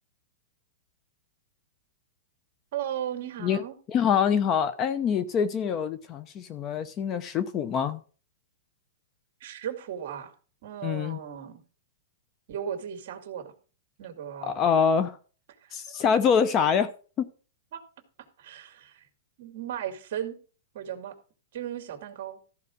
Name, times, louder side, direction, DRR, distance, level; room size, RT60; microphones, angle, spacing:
voice 1, 2.7-3.7 9.4-10.3 10.6-11.6 12.5-13.5 14.0-14.6 15.6-16.1 17.7-17.8 18.4-19.1 19.4-20.4 20.7-21.2 21.5-22.4, right 9 dB, 50° right, 2.4 m, -36 dB
voice 2, 3.9-8.0 10.8-11.2 14.4-15.2 15.7-16.9 17.2-17.3, left 7 dB, 25° left, 0.7 m, -25 dB
14.0 x 4.8 x 6.2 m
supercardioid pair, 160°, 0 cm